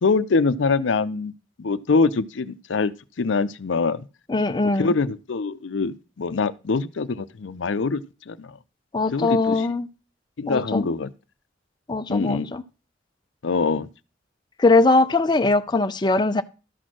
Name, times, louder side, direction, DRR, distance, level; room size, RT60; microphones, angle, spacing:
voice 1, 0.0-1.3 1.6-2.9 3.2-4.1 4.6-8.6 9.1-9.7 10.4-11.1 12.1-12.5 13.4-13.9, left 4 dB, 80° left, 0.6 m, -24 dB
voice 2, 4.3-4.9 8.9-9.9 10.5-10.9 11.9-12.6 14.6-16.4, left 3 dB, 25° left, 0.5 m, -21 dB
12.5 x 4.3 x 6.1 m
head